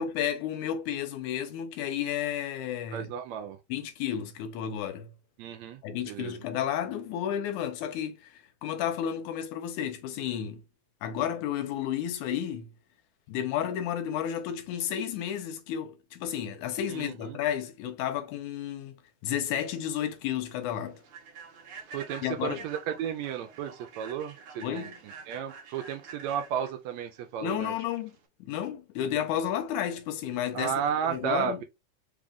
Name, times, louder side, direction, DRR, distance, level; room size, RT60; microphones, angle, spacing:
voice 1, 0.0-3.1 3.7-5.1 5.8-10.6 11.0-12.7 13.3-19.0 19.2-21.0 22.2-22.6 24.6-25.0 27.4-28.1 28.4-30.7 31.1-31.6, left 10 dB, 85° left, 2.2 m, -32 dB
voice 2, 2.9-3.6 5.4-6.4 16.9-17.4 21.9-27.7 30.5-31.6, right 8 dB, 80° right, 1.8 m, -33 dB
Human voice / Train, 19.5-28.3, right 5 dB, 60° right, 1.5 m, -48 dB
5.3 x 2.4 x 3.5 m
omnidirectional pair, 3.4 m